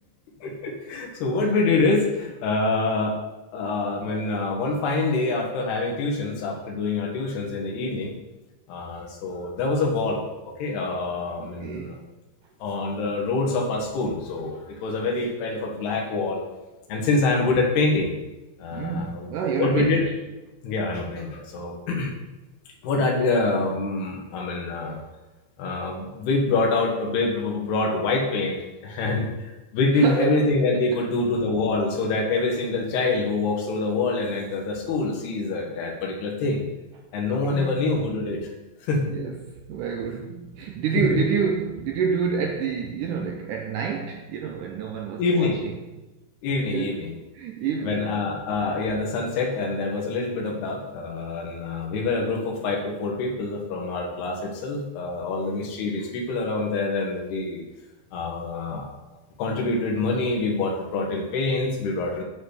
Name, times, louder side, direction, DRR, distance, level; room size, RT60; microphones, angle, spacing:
voice 1, 0.4-3.2 3.5-8.1 8.7-10.3 10.6-12.0 12.6-16.4 16.9-18.1 18.6-19.3 19.6-20.0 20.6-22.1 22.8-25.0 25.6-28.6 28.8-36.6 37.1-38.4 38.8-39.1 41.0-41.2 45.2-45.6 46.4-47.1 47.8-57.6 58.1-58.9 59.4-62.2, left 3 dB, 90° left, 0 dB, 3.7 m, -25 dB
voice 2, 11.4-12.0 18.7-20.1 29.9-30.5 30.9-31.0 37.2-37.8 39.0-46.0 46.7-47.0 47.3-48.2, right 6 dB, 75° right, 2 dB, 2.0 m, -28 dB
9.5 x 5.5 x 8.0 m, 1.1 s
omnidirectional pair, 4.5 m